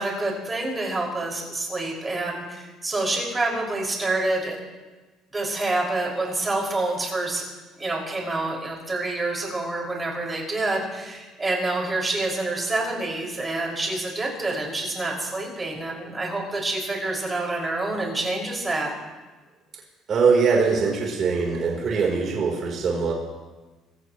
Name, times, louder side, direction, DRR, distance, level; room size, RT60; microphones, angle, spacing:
voice 1, 0.0-4.6 5.3-7.4 7.8-18.9, right 2 dB, 20° right, -1 dB, 6.0 m, -27 dB
voice 2, 20.1-23.1, right 5 dB, 45° right, -1 dB, 3.9 m, -22 dB
26.5 x 15.5 x 3.2 m, 1.2 s
cardioid pair, 100°, 0 cm